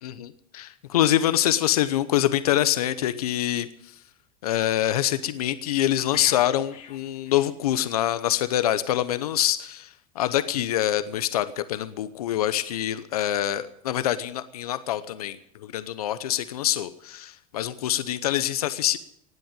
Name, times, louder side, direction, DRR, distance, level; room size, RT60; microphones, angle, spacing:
voice 1, 0.0-4.0 4.4-19.0, left 12 dB, 90° left, 13 dB, 0.8 m, -25 dB
sound 1, 6.1-8.0 8.3-8.5, left 8 dB, 45° left, 2.4 m, -42 dB
19.0 x 8.0 x 8.9 m, 0.73 s
supercardioid pair, 105°, 19 cm